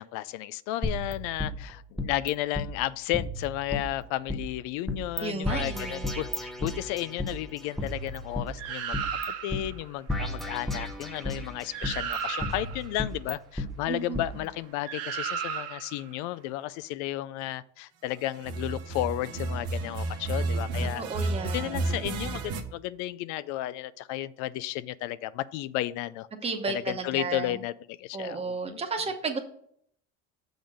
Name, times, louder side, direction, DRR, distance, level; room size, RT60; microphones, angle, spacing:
voice 1, 0.0-9.0 9.4-26.3 26.7-28.8, left 15 dB, 80° left, 17 dB, 0.4 m, -33 dB
sound 1, 0.8-2.3 2.5-2.7 3.1-4.4 4.9-5.2 5.4-7.3 7.8-9.2 9.5-9.6 10.1-11.5 11.8-13.7 14.1-14.3, left 1 dB, ahead, 0.6 m, -33 dB
voice 2, 5.2-6.1 13.9-14.2 21.0-22.0 26.4-27.6 28.1-29.4, right 4 dB, 20° right, 5 dB, 1.0 m, -33 dB
sound 2, 8.6-9.7 11.4-11.5 11.7-12.9 14.8-16.0 18.3-22.6, right 4 dB, 55° right, 1.0 m, -32 dB
7.0 x 3.9 x 6.3 m, 0.65 s
cardioid pair, 150°, 29 cm